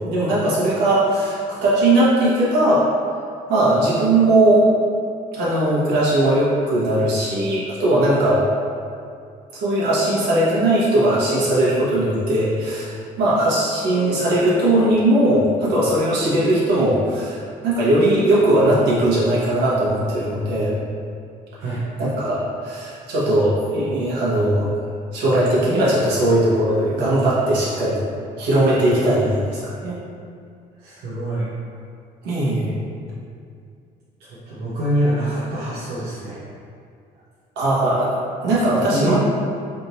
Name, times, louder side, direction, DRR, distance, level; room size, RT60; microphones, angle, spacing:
voice 1, 0.0-2.9 3.5-4.7 5.3-8.5 9.5-20.7 22.0-24.8 25.1-28.0 28.4-30.0 32.2-32.7 37.6-38.1 38.4-39.2, right 1 dB, 90° right, -8 dB, 1.4 m, -19 dB
voice 2, 30.8-31.5 34.2-36.4 38.9-39.2, right 1 dB, 75° right, -9 dB, 0.9 m, -25 dB
3.5 x 2.8 x 4.1 m, 2.3 s
cardioid pair, 110°, 17 cm